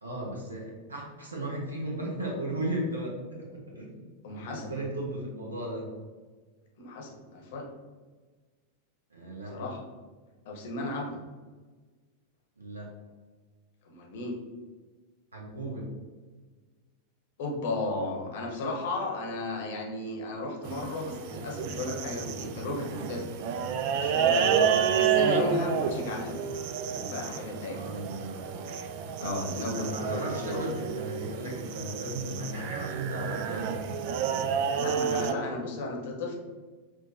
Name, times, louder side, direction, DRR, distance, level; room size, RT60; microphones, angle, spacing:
voice 1, 0.0-4.0 4.4-5.9 9.1-9.6 12.6-12.9 15.3-15.9 24.4-24.8 27.7-28.4 29.2-33.8, right 1 dB, 75° right, -2 dB, 1.1 m, -36 dB
voice 2, 4.2-4.7 6.8-7.7 9.5-9.8 10.4-11.1 13.8-14.4 17.4-26.4 27.0-27.8 29.2-30.6 34.7-36.4, left 2 dB, 55° left, 0 dB, 0.9 m, -34 dB
sound 1, 20.6-35.3, right 7 dB, 45° right, 0.3 m, -30 dB
6.1 x 2.7 x 2.7 m, 1.4 s
figure-of-eight pair, 90°, 0 cm